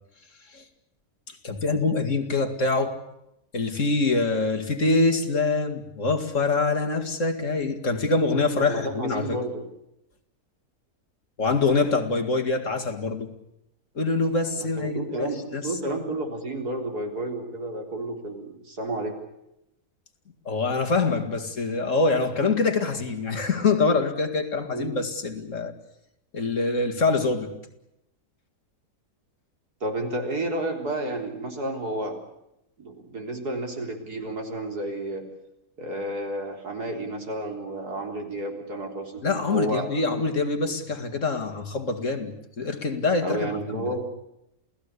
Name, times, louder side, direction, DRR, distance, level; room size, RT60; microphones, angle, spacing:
voice 1, 1.3-3.0 3.5-9.4 11.4-13.3 14.0-16.0 20.5-25.7 26.3-27.5 39.2-43.9, left 3 dB, 55° left, 2.5 m, -25 dB
voice 2, 8.6-9.6 14.6-19.2 24.7-24.9 29.8-32.2 32.8-35.2 35.8-39.9 43.2-44.0, right 1 dB, 85° right, 4.3 m, -31 dB
28.5 x 17.5 x 8.2 m
omnidirectional pair, 1.6 m